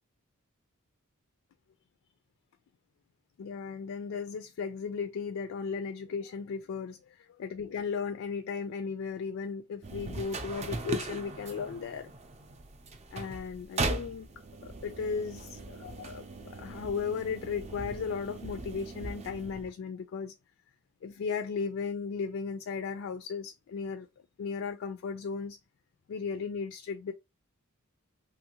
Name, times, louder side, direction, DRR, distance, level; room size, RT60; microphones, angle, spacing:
voice 1, 3.4-12.1 13.1-14.3 14.6-20.3 21.0-24.1 24.4-25.6 26.1-27.1, left 5 dB, 65° left, 0.3 m, -36 dB
sound 1, 9.8-19.7, right 2 dB, 30° right, 0.5 m, -39 dB
2.9 x 2.6 x 2.8 m
head